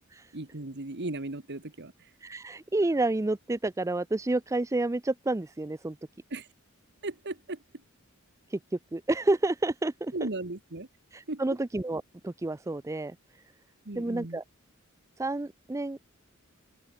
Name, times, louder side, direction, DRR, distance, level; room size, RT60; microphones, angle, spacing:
voice 1, 0.3-2.1 6.3-6.5 7.0-7.8 10.1-10.9 11.3-11.4 13.8-14.4, right 2 dB, 55° right, 1.8 m, -37 dB
voice 2, 2.2-6.0 8.5-8.6 8.9-10.3 11.1-13.2 14.0-14.4 15.2-16.0, right 2 dB, 15° right, 0.4 m, -29 dB
head